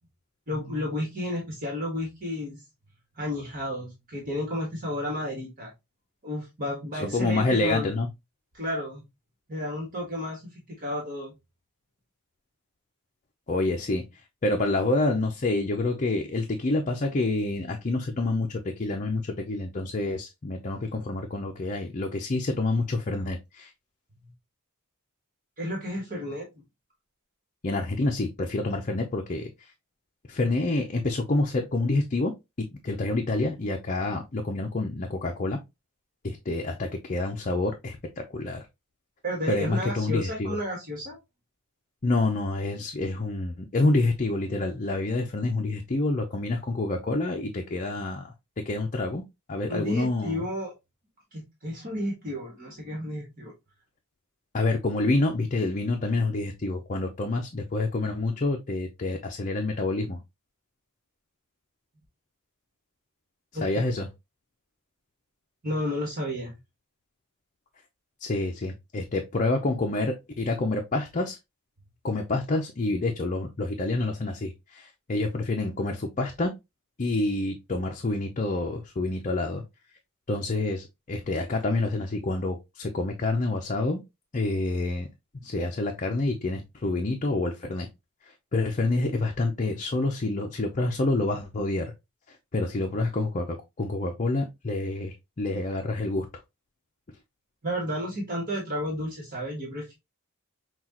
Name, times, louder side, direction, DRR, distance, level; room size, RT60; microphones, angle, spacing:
voice 1, 0.5-2.6 3.1-5.7 6.2-7.9 8.5-9.0 9.5-11.4 25.6-26.5 39.2-41.2 49.7-50.7 51.3-53.5 63.5-63.8 65.6-66.6 97.6-99.9, equal, 40° right, 1.4 m, -32 dB
voice 2, 6.9-8.1 13.5-14.0 14.4-23.7 27.6-29.5 30.3-32.3 32.8-35.6 36.2-38.6 39.5-40.6 42.0-48.3 48.6-49.2 49.5-50.5 54.5-60.2 63.6-64.1 68.2-71.4 72.0-76.5 77.0-79.6 80.3-84.0 84.3-85.1 85.4-87.9 88.5-91.9 92.5-96.3, left 2 dB, 35° left, 0.6 m, -27 dB
5.9 x 2.4 x 2.9 m
head